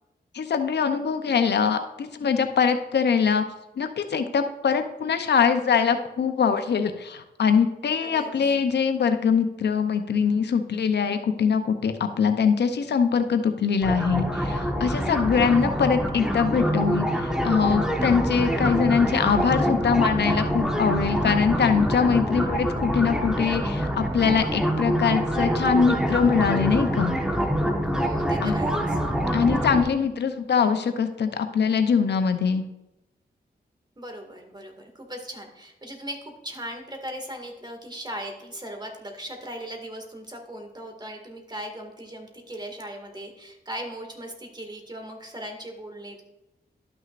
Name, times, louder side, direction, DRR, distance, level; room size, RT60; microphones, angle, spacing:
voice 1, 0.3-3.4 3.8-27.1 28.4-28.6 29.3-32.6, left 6 dB, 80° left, 8 dB, 0.7 m, -23 dB
voice 2, 8.0-8.3 27.9-29.0 34.0-46.2, equal, 25° right, 3 dB, 2.0 m, -38 dB
sound 1, 13.8-29.8, equal, 5° right, 1.2 m, -25 dB
12.0 x 6.2 x 2.5 m, 0.95 s
cardioid pair, 60°, 18 cm